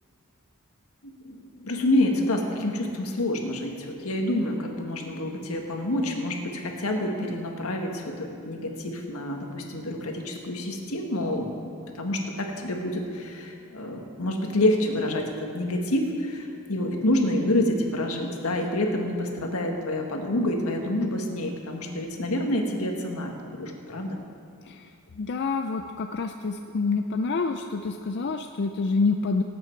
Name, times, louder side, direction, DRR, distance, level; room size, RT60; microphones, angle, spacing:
voice 1, 1.2-24.2, left 1 dB, 80° left, 2 dB, 1.6 m, -28 dB
voice 2, 24.7-29.4, left 4 dB, 50° left, 5 dB, 0.4 m, -27 dB
18.0 x 8.7 x 4.6 m, 2.5 s
head